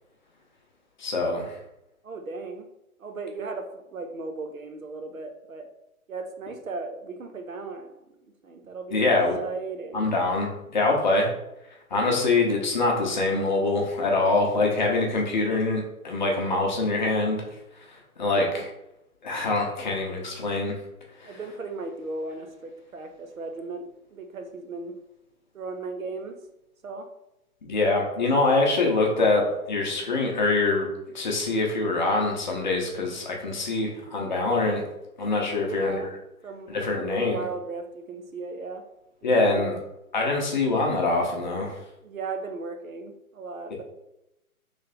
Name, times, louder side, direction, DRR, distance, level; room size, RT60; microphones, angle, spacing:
voice 1, 1.0-1.6 8.9-9.4 9.9-11.3 11.9-17.4 18.2-18.6 19.2-20.7 21.2-21.3 27.6-30.9 31.1-34.8 35.2-36.0 36.7-37.4 39.2-39.7 40.1-41.8, left 3 dB, 30° left, 0 dB, 0.8 m, -24 dB
voice 2, 2.0-2.7 3.0-5.7 6.1-8.1 8.4-9.0 9.4-10.2 18.2-18.6 21.2-25.0 25.5-26.4 26.8-27.1 35.5-36.1 36.4-38.8 39.2-39.7 42.0-43.8, right 3 dB, 65° right, 5 dB, 0.7 m, -36 dB
3.2 x 3.1 x 3.8 m, 0.87 s
figure-of-eight pair, 135°, 44 cm